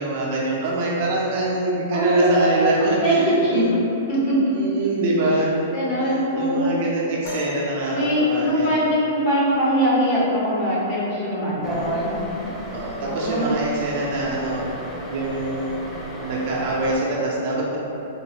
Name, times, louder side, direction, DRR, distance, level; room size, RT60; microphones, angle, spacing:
voice 1, 0.0-3.7 4.5-5.5 6.3-8.8 11.5-12.0 12.7-14.6 15.1-15.8 16.2-17.8, right 2 dB, 45° right, -4 dB, 0.6 m, -24 dB
voice 2, 1.9-3.6 4.1-4.4 5.7-6.7 7.9-12.1 13.0-13.5, equal, 35° left, -7 dB, 1.0 m, -22 dB
sound 1, 7.2-9.1 10.8-10.9 11.7-11.9 12.8-12.9, left 2 dB, 75° left, 1.4 m, -38 dB
sound 2, 11.6-17.0, equal, 15° left, 0.3 m, -36 dB
3.9 x 2.5 x 3.0 m, 2.9 s
hypercardioid pair, 165°, 0 cm